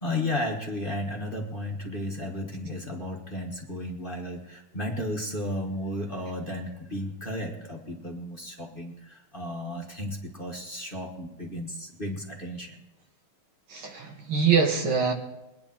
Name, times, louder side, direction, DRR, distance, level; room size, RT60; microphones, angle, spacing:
voice 1, 0.0-12.8, left 1 dB, 30° left, 0 dB, 1.4 m, -34 dB
voice 2, 13.7-15.1, right 6 dB, 80° right, 3 dB, 2.4 m, -24 dB
22.0 x 9.7 x 4.4 m, 0.97 s
omnidirectional pair, 2.3 m